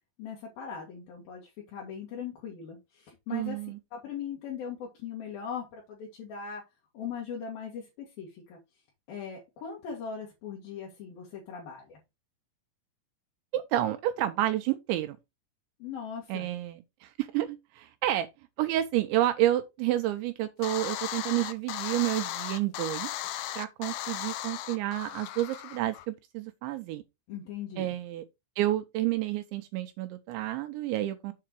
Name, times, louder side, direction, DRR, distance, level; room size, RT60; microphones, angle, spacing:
voice 1, 0.2-3.6 3.9-6.6 6.9-8.6 9.1-12.0 15.8-16.5 27.3-27.9, left 7 dB, 55° left, 3.2 m, -39 dB
voice 2, 3.3-3.8 13.5-15.2 16.3-18.3 18.6-23.1 23.6-27.0 27.8-28.2 28.6-31.3, right 14 dB, 80° right, 2.8 m, -30 dB
sound 1, 20.6-26.1, left 13 dB, 80° left, 2.9 m, -36 dB
7.7 x 4.8 x 4.6 m
omnidirectional pair, 5.7 m